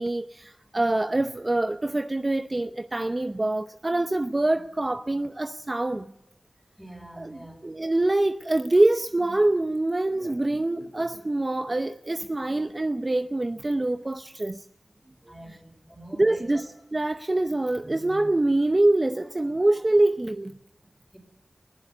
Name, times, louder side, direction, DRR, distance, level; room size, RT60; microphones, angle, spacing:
voice 1, 0.0-6.1 7.2-14.6 15.5-15.6 16.2-16.7 16.9-20.5, right 2 dB, 35° right, 0.7 m, -25 dB
voice 2, 6.8-7.6 15.3-16.6 21.1-21.2, right 1 dB, 5° right, 5.0 m, -45 dB
21.5 x 16.5 x 8.0 m
wide cardioid pair, 50°, 0 cm